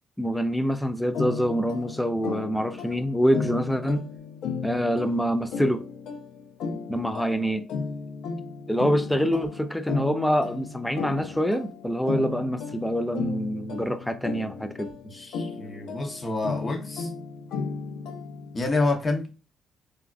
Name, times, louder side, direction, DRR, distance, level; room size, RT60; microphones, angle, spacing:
voice 1, 0.2-4.1 4.6-5.8 6.9-7.7 8.7-14.9, equal, 5° left, 0.4 m, -25 dB
sound 1, 1.1-18.6, left 5 dB, 80° left, 0.6 m, -35 dB
voice 2, 15.0-17.1 18.5-19.3, left 2 dB, 30° left, 0.7 m, -28 dB
3.4 x 2.3 x 2.3 m
cardioid pair, 85°, 0 cm